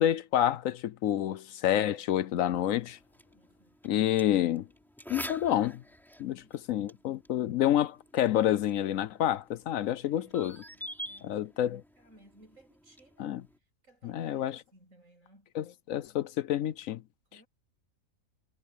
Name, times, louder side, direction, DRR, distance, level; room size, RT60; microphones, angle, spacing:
voice 1, 0.0-3.0 3.8-4.7 5.1-5.8 6.2-6.4 6.7-10.6 11.2-11.8 13.2-13.4 14.0-14.6 15.5-17.0, left 11 dB, 70° left, 1.0 m, -28 dB
sound 1, 2.5-13.6, equal, ahead, 3.2 m, -48 dB
voice 2, 3.3-3.8 6.2-7.0 10.0-13.3 13.8-15.5 17.3-17.5, right 1 dB, 65° right, 7.6 m, -61 dB
omnidirectional pair, 1.5 m